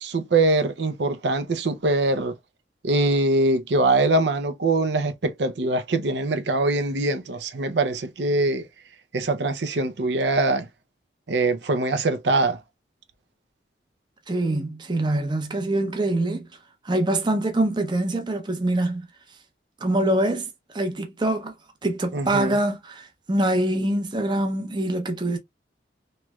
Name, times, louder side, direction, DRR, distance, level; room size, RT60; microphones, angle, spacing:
voice 1, 0.0-2.3 2.8-8.7 9.1-10.7 11.3-12.6 22.1-22.6, right 2 dB, 70° right, 0.6 m, -23 dB
voice 2, 14.3-16.5 16.8-19.1 19.8-21.5 21.8-25.4, right 1 dB, 25° right, 0.6 m, -24 dB
3.1 x 3.1 x 2.3 m
head